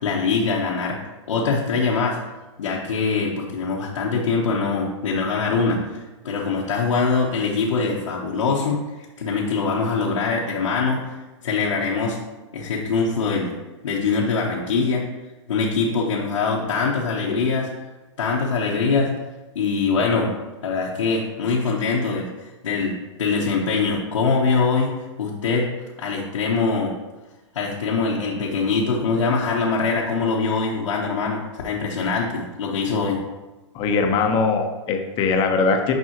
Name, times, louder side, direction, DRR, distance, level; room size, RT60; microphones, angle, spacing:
voice 1, 0.0-1.0 1.3-2.2 2.6-11.1 11.4-12.2 12.5-13.5 13.8-15.0 15.5-17.7 18.2-19.1 19.5-20.3 20.6-24.9 25.2-25.7 26.0-26.9 27.5-33.2, left 4 dB, 85° left, -5 dB, 1.2 m, -23 dB
voice 2, 33.7-35.9, left 4 dB, 30° left, 4 dB, 1.0 m, -21 dB
9.4 x 5.4 x 3.0 m, 1.1 s
hypercardioid pair, 135°, 16 cm